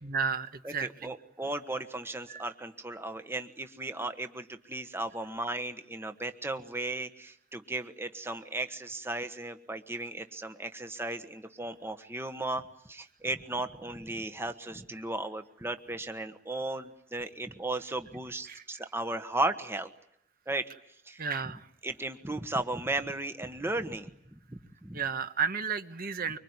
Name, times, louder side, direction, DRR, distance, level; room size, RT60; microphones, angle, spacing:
voice 1, 0.0-1.1 2.3-2.4 18.5-18.6 21.2-21.7 24.9-26.4, right 6 dB, 45° right, 9 dB, 1.4 m, -32 dB
voice 2, 0.6-12.6 12.9-19.9 20.5-20.7 21.1-21.2 21.8-24.1 24.5-25.0, right 2 dB, 10° right, 8 dB, 1.3 m, -35 dB
25.5 x 24.5 x 9.7 m, 0.70 s
head